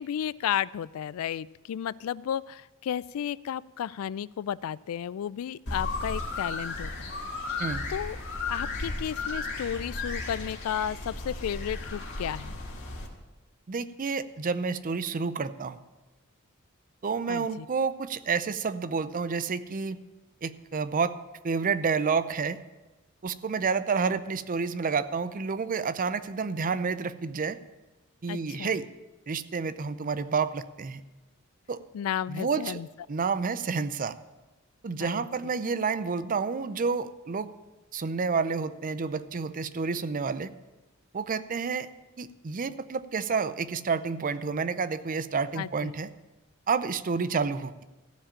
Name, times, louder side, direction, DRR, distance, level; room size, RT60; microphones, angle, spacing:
voice 1, 0.0-7.1 7.9-8.2 8.5-12.6 17.3-17.7 28.3-28.8 31.9-32.9 35.0-35.3 45.6-45.9, left 9 dB, 70° left, 21 dB, 0.3 m, -33 dB
sound 1, 5.7-13.1, left 3 dB, 55° left, 2.2 m, -34 dB
voice 2, 13.7-15.8 17.0-20.0 20.4-21.1 21.4-22.6 23.2-27.6 28.2-28.9 29.3-31.0 31.7-31.8 32.3-32.8 33.1-34.1 34.8-37.5 37.9-40.5 41.1-41.9 42.2-46.1 46.7-47.7, right 5 dB, 40° right, 14 dB, 0.5 m, -29 dB
14.5 x 5.0 x 8.6 m, 1.1 s
head